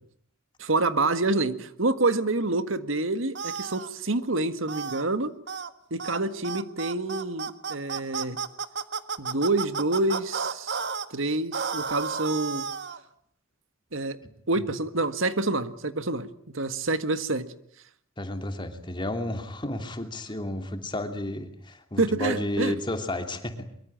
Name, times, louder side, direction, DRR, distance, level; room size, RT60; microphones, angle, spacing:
voice 1, 0.6-5.3 5.9-8.4 9.2-10.8 11.1-12.7 13.9-14.2 14.5-16.3 16.5-17.5 22.0-22.8, right 2 dB, 75° right, 11 dB, 1.7 m, -27 dB
sound 1, 3.3-3.9 4.7-5.0 5.5-5.7 6.0-6.2 6.4-11.1 11.5-13.0, right 5 dB, 55° right, 1.6 m, -32 dB
voice 2, 18.2-23.7, left 1 dB, 25° left, 6 dB, 3.0 m, -32 dB
23.5 x 23.5 x 8.8 m, 0.66 s
head